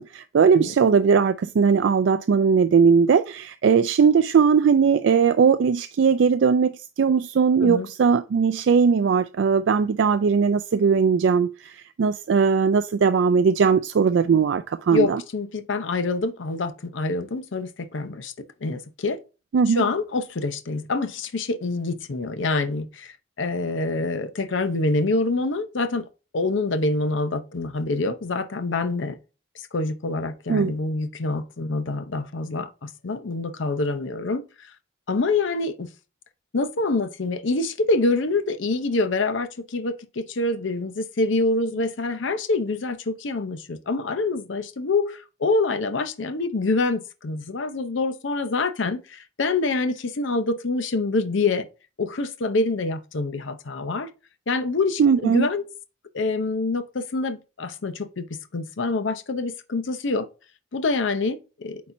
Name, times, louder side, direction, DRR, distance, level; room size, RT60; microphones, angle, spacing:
voice 1, 0.0-15.2 19.5-19.8 30.5-30.7 55.0-55.5, right 6 dB, 70° right, 0.3 m, -19 dB
voice 2, 14.9-18.3 18.6-19.2 19.7-26.0 26.3-29.2 29.7-34.7 35.1-35.9 36.5-51.7 52.0-54.1 54.5-55.6 56.1-60.3 60.7-61.8, left 3 dB, 75° left, 0.7 m, -26 dB
8.5 x 4.2 x 2.6 m
head